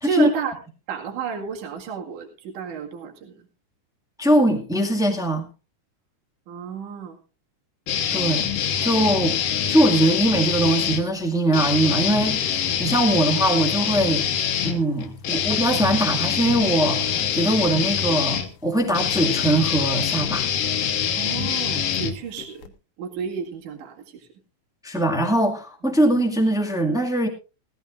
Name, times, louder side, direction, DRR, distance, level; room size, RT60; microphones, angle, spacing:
voice 1, 0.0-0.6 0.9-3.4 6.5-7.2 21.2-22.7 23.0-24.3, right 6 dB, 65° right, 0 dB, 3.4 m, -31 dB
voice 2, 4.2-5.5 8.1-8.5 8.8-9.3 9.7-14.3 14.6-20.5 24.8-27.3, right 1 dB, 5° right, 1 dB, 0.7 m, -21 dB
sound 1, 7.9-11.0 11.5-22.7, left 8 dB, 70° left, 2.8 m, -25 dB
18.0 x 15.0 x 2.5 m, 0.30 s
omnidirectional pair, 4.1 m